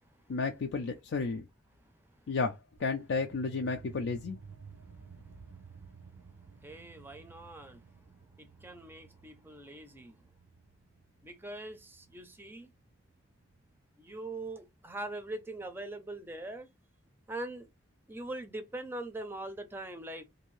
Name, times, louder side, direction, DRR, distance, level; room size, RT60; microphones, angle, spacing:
voice 1, 0.3-1.5 2.3-4.4, left 4 dB, 80° left, 0.4 m, -32 dB
sound 1, 2.8-13.9, right 5 dB, 80° right, 0.5 m, -54 dB
voice 2, 4.9-6.2 6.5-10.3 11.2-12.7 14.0-16.7 17.3-17.7 18.1-20.3, right 2 dB, 10° right, 0.4 m, -43 dB
2.6 x 2.6 x 3.0 m
head